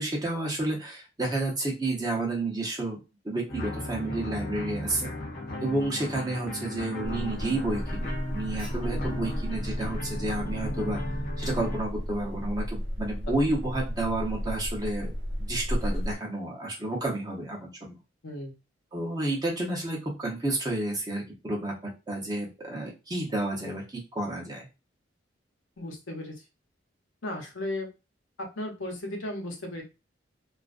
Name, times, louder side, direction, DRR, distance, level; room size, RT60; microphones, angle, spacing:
voice 1, 0.0-5.1 5.6-15.1 15.4-18.0 18.9-23.8 24.1-24.7, right 2 dB, 20° right, -2 dB, 0.7 m, -31 dB
sound 1, 3.5-11.8, left 1 dB, 50° left, 0.7 m, -36 dB
Alarm, 7.0-16.2, equal, 90° right, 0.9 m, -33 dB
voice 2, 18.2-18.5 25.8-26.4 27.2-27.9 28.4-29.8, left 1 dB, 85° left, 2 dB, 0.7 m, -35 dB
2.4 x 2.2 x 2.4 m, 0.27 s
head